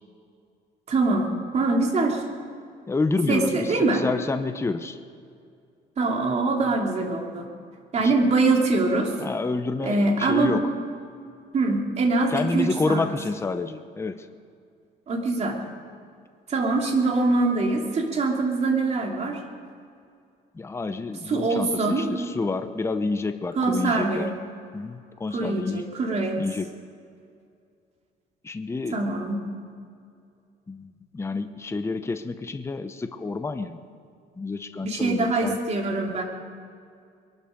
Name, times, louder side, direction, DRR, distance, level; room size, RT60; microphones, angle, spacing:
voice 1, 0.9-2.2 3.3-4.0 6.0-7.5 7.9-9.1 9.8-10.6 11.5-13.0 15.1-15.6 16.5-19.4 21.3-22.3 23.6-24.3 25.3-26.4 28.9-29.4 34.8-36.2, right 3 dB, 40° right, 1 dB, 2.8 m, -23 dB
voice 2, 2.9-5.0 8.0-8.1 9.2-10.7 12.3-14.3 20.5-24.3 24.7-25.8 26.4-26.7 28.4-29.1 30.7-33.8 34.4-35.6, left 3 dB, 15° left, 9 dB, 0.8 m, -29 dB
22.5 x 12.0 x 5.2 m, 2.3 s
cardioid pair, 110°, 17 cm